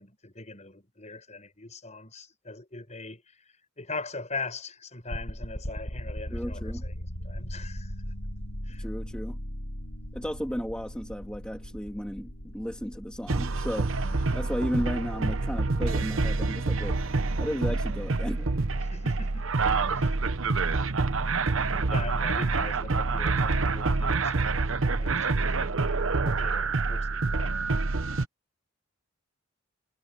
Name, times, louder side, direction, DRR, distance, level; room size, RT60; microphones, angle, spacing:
voice 1, 0.0-7.9 8.6-8.9 14.1-14.4 18.8-19.6 19.9-20.2 21.9-27.5, left 3 dB, 35° left, 6.1 m, -41 dB
sound 1, 5.1-22.0, equal, 75° left, 7.6 m, -40 dB
voice 2, 6.3-6.8 8.8-9.4 10.1-14.0 14.3-17.0 17.4-18.5, equal, 5° left, 2.1 m, -34 dB
sound 2, 13.3-28.2, right 3 dB, 70° right, 0.9 m, -27 dB
head